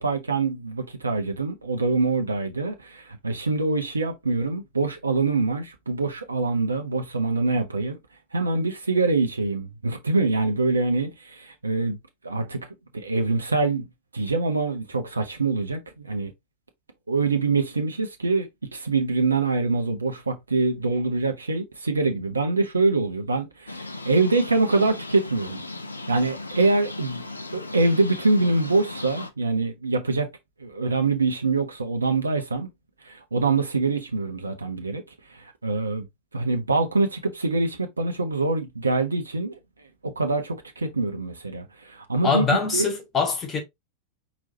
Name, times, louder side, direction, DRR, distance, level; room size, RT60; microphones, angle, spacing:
voice 1, 0.0-8.0 8.3-12.0 12.2-12.7 12.9-13.9 14.1-16.3 17.1-25.6 26.1-27.2 27.5-30.3 30.6-32.7 33.0-35.0 35.3-36.1 36.3-39.6 40.0-42.4 42.7-42.9, right 3 dB, 75° right, 0.8 m, -24 dB
sound 1, 23.7-29.3, left 2 dB, 80° left, 0.6 m, -37 dB
voice 2, 42.2-43.6, left 5 dB, 25° left, 1.5 m, -24 dB
4.6 x 4.0 x 2.7 m
figure-of-eight pair, 90°, 0 cm